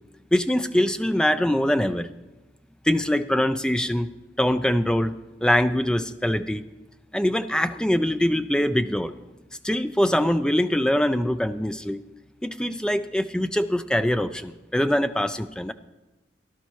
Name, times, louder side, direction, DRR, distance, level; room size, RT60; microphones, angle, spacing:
voice 1, 0.3-2.1 2.8-4.1 4.4-5.1 5.4-6.6 7.1-9.2 9.6-12.0 12.4-15.7, equal, 5° left, 10 dB, 0.3 m, -23 dB
17.5 x 11.5 x 3.0 m, 1.1 s
head